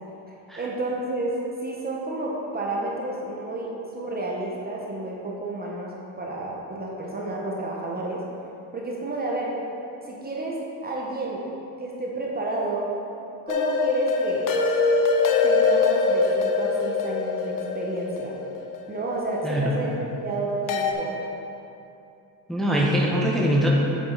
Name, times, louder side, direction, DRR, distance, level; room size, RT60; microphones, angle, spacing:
voice 1, 0.6-1.3 1.6-3.7 3.9-8.2 8.7-9.5 10.1-10.6 10.8-11.4 11.8-12.9 13.5-14.5 15.4-18.3 18.9-19.9 20.2-21.2, right 2 dB, 25° right, -3 dB, 1.2 m, -30 dB
sound 1, 13.5-19.5 20.7-20.9, left 4 dB, 50° left, 0.9 m, -23 dB
voice 2, 22.5-23.7, equal, ahead, -5 dB, 1.2 m, -22 dB
7.7 x 6.8 x 4.0 m, 2.7 s
cardioid pair, 110°, 41 cm